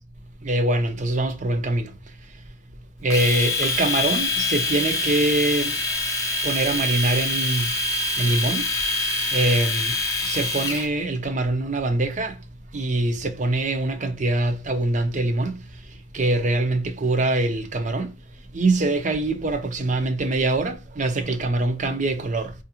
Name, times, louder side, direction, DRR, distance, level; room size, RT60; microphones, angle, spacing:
voice 1, 0.4-1.9 3.0-5.8 6.4-7.8 8.2-8.7 9.3-10.0 10.2-12.4 12.7-15.8 16.1-18.1 18.5-22.5, right 2 dB, 40° right, 0.5 m, -23 dB
Domestic sounds home sounds, 3.1-10.9, left 2 dB, 15° left, 0.6 m, -25 dB
4.5 x 2.5 x 2.8 m
head